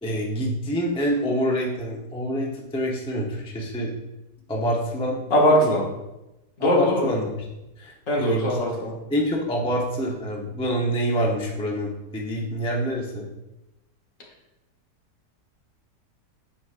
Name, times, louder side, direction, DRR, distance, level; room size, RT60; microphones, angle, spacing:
voice 1, 0.0-3.9 4.5-5.2 5.6-5.7 6.6-7.3 7.8-8.6 9.1-13.3, equal, 10° left, -2 dB, 0.3 m, -26 dB
voice 2, 5.3-5.8 6.6-7.1 8.1-8.9, equal, 50° left, -2 dB, 1.6 m, -20 dB
8.2 x 4.8 x 2.5 m, 0.96 s
omnidirectional pair, 1.8 m